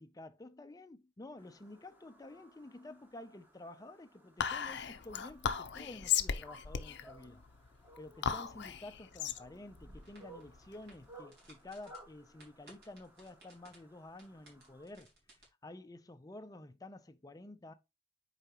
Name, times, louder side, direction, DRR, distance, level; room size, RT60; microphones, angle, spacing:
voice 1, 0.0-7.4 8.0-15.1 15.6-17.7, left 2 dB, 20° left, 0.5 m, -51 dB
sound 1, 1.4-14.8, right 1 dB, 10° right, 1.2 m, -60 dB
Whispering, 4.4-11.1, left 8 dB, 65° left, 0.6 m, -37 dB
sound 2, 9.6-15.4, right 1 dB, 60° right, 4.3 m, -61 dB
7.9 x 4.8 x 2.9 m
head